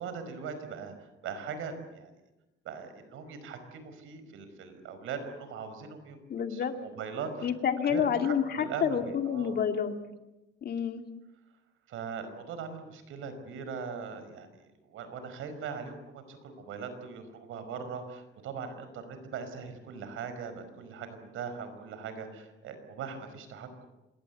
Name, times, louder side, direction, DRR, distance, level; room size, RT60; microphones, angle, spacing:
voice 1, 0.0-2.1 2.6-6.2 6.5-7.5 7.8-9.6 11.9-23.9, right 5 dB, 80° right, 9 dB, 5.2 m, -40 dB
voice 2, 6.3-6.7 7.4-9.9 10.6-11.0, left 7 dB, 50° left, 6 dB, 2.4 m, -29 dB
27.5 x 21.5 x 8.2 m, 0.99 s
cardioid pair, 145°, 21 cm